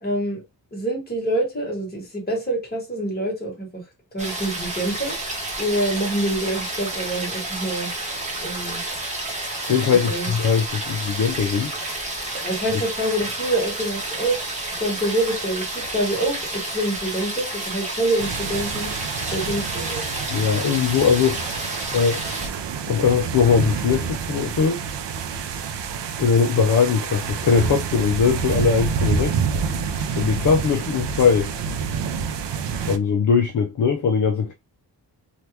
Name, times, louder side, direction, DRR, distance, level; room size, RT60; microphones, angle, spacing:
voice 1, 0.0-0.4 0.7-3.8 4.1-5.2 5.6-7.9 8.4-8.8 9.9-10.3 12.4-14.4 14.7-18.9 19.3-20.1, right 1 dB, 20° left, 1.3 m, -26 dB
sound 1, 4.2-22.5, right 2 dB, 15° right, 0.9 m, -30 dB
voice 2, 9.7-11.7 20.3-22.2 22.9-24.8 26.2-29.4 30.1-31.5 32.9-34.5, left 6 dB, 50° left, 0.5 m, -20 dB
sound 2, 18.2-33.0, right 6 dB, 75° right, 0.6 m, -28 dB
2.8 x 2.3 x 3.2 m
wide cardioid pair, 165°, 42 cm